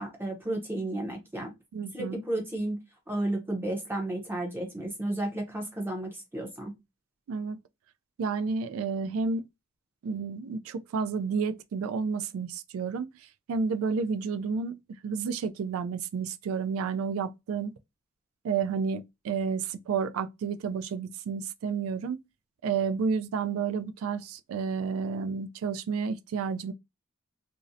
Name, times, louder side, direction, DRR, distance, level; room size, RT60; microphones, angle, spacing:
voice 1, 0.0-1.5 1.9-2.8 3.1-6.7, right 1 dB, 10° right, 0.6 m, -32 dB
voice 2, 1.7-2.2 7.3-7.6 8.2-9.4 10.0-13.1 13.5-14.8 15.0-17.7 18.4-22.2 22.6-26.7, right 5 dB, 75° right, 0.3 m, -31 dB
2.6 x 2.0 x 2.5 m
head